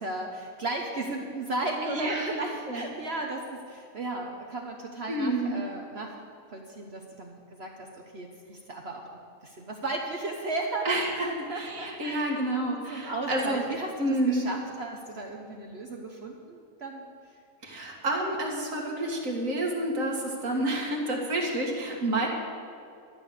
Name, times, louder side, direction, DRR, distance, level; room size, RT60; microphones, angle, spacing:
voice 1, 0.0-6.1 6.5-9.0 9.4-17.0, right 2 dB, 50° right, 1 dB, 1.2 m, -35 dB
voice 2, 1.8-2.3 2.7-2.8 5.1-5.6 10.8-11.3 11.5-13.6 14.0-14.4 17.6-22.3, right 1 dB, 70° right, -1 dB, 2.4 m, -29 dB
13.0 x 9.3 x 6.6 m, 2.4 s
omnidirectional pair, 1.4 m